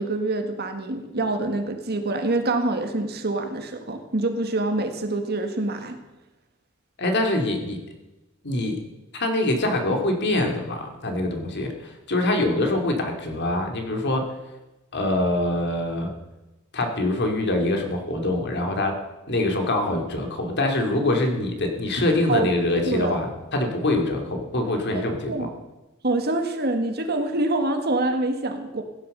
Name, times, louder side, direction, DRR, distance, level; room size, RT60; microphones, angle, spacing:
voice 1, 0.0-6.0 22.3-22.5 22.8-23.2 24.9-25.5 26.0-28.8, right 2 dB, 50° right, 6 dB, 1.8 m, -26 dB
voice 2, 7.0-7.8 8.4-8.8 9.1-14.3 14.9-16.1 16.7-19.0 19.3-25.3, left 1 dB, 55° left, 3 dB, 2.7 m, -24 dB
16.5 x 10.5 x 6.8 m, 1.0 s
head